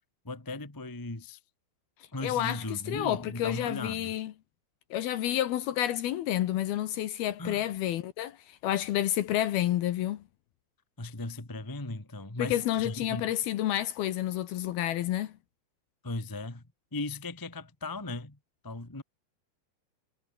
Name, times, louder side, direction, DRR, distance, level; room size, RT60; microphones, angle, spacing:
voice 1, 0.2-1.4 2.1-4.1 7.4-7.6 11.0-13.3 16.0-16.6 16.9-18.4 18.6-19.0, left 2 dB, 10° left, 0.9 m, -37 dB
voice 2, 2.2-4.3 4.9-10.2 12.4-15.3, left 12 dB, 70° left, 2.7 m, -30 dB
omnidirectional pair, 5.2 m